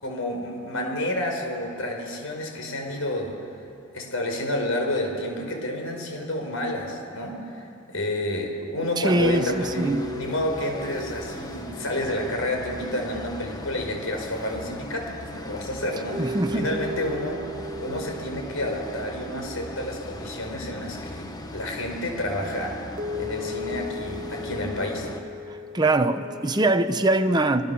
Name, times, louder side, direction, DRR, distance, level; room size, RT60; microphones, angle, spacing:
voice 1, 0.0-3.3 3.9-17.4 17.8-21.3 21.5-22.7 23.2-25.1, left 1 dB, 75° left, 2 dB, 5.3 m, -30 dB
voice 2, 9.0-10.1 16.2-16.8 25.5-27.7, right 2 dB, 20° right, 7 dB, 0.9 m, -23 dB
sound 1, 9.2-25.2, left 1 dB, 20° left, 1.4 m, -39 dB
sound 2, 9.3-14.7 16.1-21.5 23.0-26.8, left 1 dB, 40° right, 1.5 m, -38 dB
27.5 x 22.5 x 7.1 m, 2.6 s
head